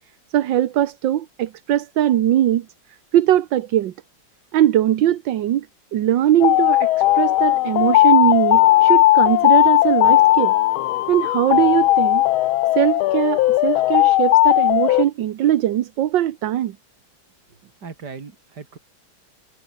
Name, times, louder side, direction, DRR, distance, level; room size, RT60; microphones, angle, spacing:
voice 1, 0.3-2.7 3.1-3.9 4.5-5.7 5.9-10.5 11.1-12.2 12.7-16.8, right 12 dB, 65° right, 1.6 m, -20 dB
sound 1, 6.4-15.0, left 16 dB, 85° left, 1.5 m, -16 dB
voice 2, 17.5-18.8, right 5 dB, 50° right, 3.1 m, -39 dB
omnidirectional pair, 2.2 m